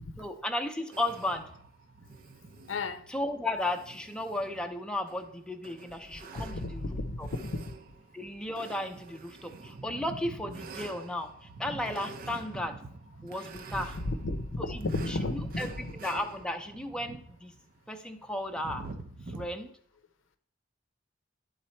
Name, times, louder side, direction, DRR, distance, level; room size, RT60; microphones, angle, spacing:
voice 1, 0.2-1.5 3.1-7.3 8.1-12.8 13.2-14.0 14.6-15.7 15.9-17.5 17.9-18.9 19.3-19.7, left 1 dB, 5° left, 4 dB, 0.6 m, -35 dB
sound 1, 0.9-19.5, right 3 dB, 50° right, 0.5 m, -47 dB
voice 2, 2.7-3.1 6.3-7.7 13.7-15.9, left 2 dB, 85° left, 10 dB, 0.7 m, -34 dB
11.5 x 3.9 x 4.4 m, 0.65 s
head